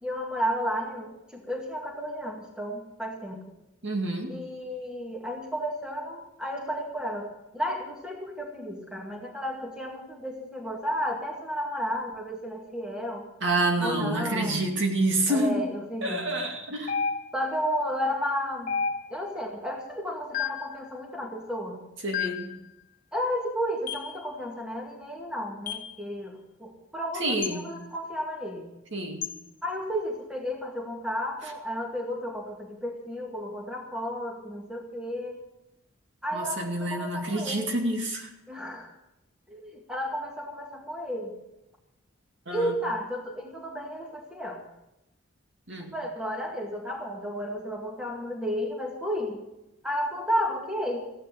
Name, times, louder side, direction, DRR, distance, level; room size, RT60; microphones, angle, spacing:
voice 1, 0.0-3.4 4.3-13.3 13.8-14.6 15.3-16.3 17.3-18.7 19.1-21.8 23.1-28.7 29.6-35.4 36.2-37.7 38.5-38.9 39.5-41.3 42.5-44.6 45.9-49.4 49.8-51.1, equal, 5° right, 0 dB, 2.0 m, -32 dB
voice 2, 3.8-4.4 13.4-15.6 16.0-16.9 22.0-22.5 27.1-27.7 28.9-29.3 36.3-38.3 42.5-42.8 45.7-45.9, right 1 dB, 65° right, 2 dB, 2.4 m, -28 dB
sound 1, 16.9-17.6 18.7-19.3 20.3-20.8 22.1-22.6 23.9-24.1 25.7-25.9 27.4-27.6 29.2-29.4, left 6 dB, 40° left, 1.0 m, -31 dB
15.5 x 10.0 x 7.0 m, 0.92 s
head